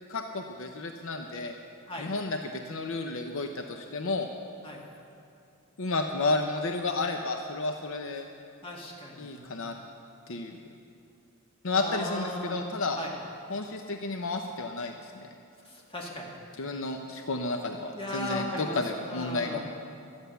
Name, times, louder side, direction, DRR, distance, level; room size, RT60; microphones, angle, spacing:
voice 1, 0.1-1.5 2.0-4.3 5.8-8.3 9.2-9.7 10.3-10.6 11.6-13.0 13.5-15.3 16.6-19.6, left 3 dB, 65° left, 4 dB, 0.7 m, -32 dB
voice 2, 8.6-9.7 11.7-12.6 13.0-13.1 15.6-16.3 17.9-18.8 19.0-19.6, left 1 dB, 25° left, -3 dB, 2.3 m, -37 dB
13.5 x 9.6 x 6.8 m, 2.7 s
head